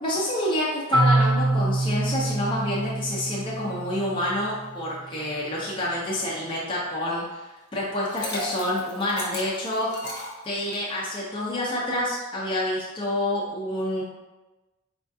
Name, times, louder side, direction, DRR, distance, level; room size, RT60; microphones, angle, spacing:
voice 1, 0.0-7.5 7.7-9.9 10.4-14.0, left 1 dB, 25° left, -6 dB, 0.4 m, -28 dB
Marimba xylophone, 0.9-4.8, right 2 dB, 70° right, 0.6 m, -25 dB
Liquid, 7.9-11.0, left 2 dB, 60° left, 0.7 m, -35 dB
4.2 x 2.3 x 2.6 m, 1.1 s
head